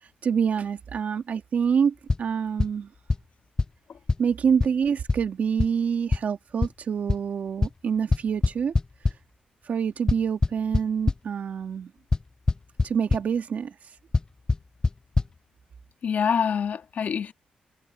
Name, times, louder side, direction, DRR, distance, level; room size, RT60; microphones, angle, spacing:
voice 1, 0.0-2.9 4.2-8.7 9.0-9.2 9.6-11.9 12.8-14.0, right 7 dB, 65° right, 2.2 m, -26 dB
sound 1, 2.1-2.2 2.6-2.7 3.1-3.2 3.6-3.7 4.1-4.2 4.6-4.7 5.1-5.2 5.6-5.7 6.1-6.2 6.6-6.7 7.1-7.2 7.6-7.7 8.1-9.1 10.1-11.2 12.1-12.2 12.5-12.9 13.1-13.2 14.1-14.2 14.5-14.6 14.8-14.9 15.2-15.3, left 3 dB, 30° left, 0.8 m, -21 dB
voice 2, 16.0-17.3, left 7 dB, 70° left, 1.8 m, -26 dB
cardioid pair, 85°, 3 cm